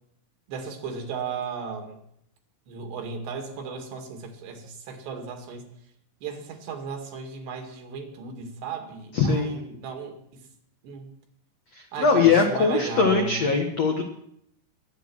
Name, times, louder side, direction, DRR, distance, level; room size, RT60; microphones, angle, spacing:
voice 1, 0.5-2.0 2.7-5.7 6.2-10.2 10.8-11.1 11.9-13.6, right 5 dB, 70° right, 4 dB, 4.2 m, -35 dB
voice 2, 9.1-9.6 12.0-14.0, left 5 dB, 85° left, 3 dB, 1.4 m, -21 dB
22.0 x 9.5 x 6.2 m, 0.73 s
omnidirectional pair, 5.2 m